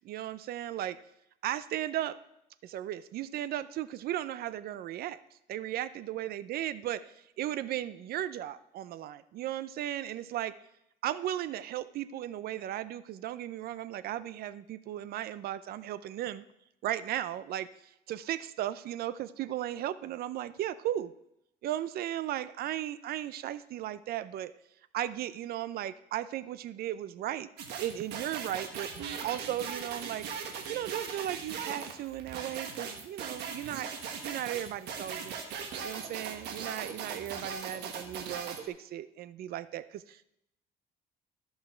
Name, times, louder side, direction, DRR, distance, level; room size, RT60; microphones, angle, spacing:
voice 1, 0.0-1.0 1.4-2.2 2.6-5.2 5.5-10.5 11.0-16.4 16.8-17.7 18.1-21.1 21.6-24.5 24.9-27.5 27.8-28.9 29.2-30.3 30.7-33.9 34.2-35.4 35.8-40.2, right 12 dB, 65° right, 15 dB, 0.5 m, -36 dB
sound 1, 27.6-38.6, right 6 dB, 85° right, 1.4 m, -39 dB
14.0 x 5.6 x 4.4 m, 0.80 s
cardioid pair, 110°, 17 cm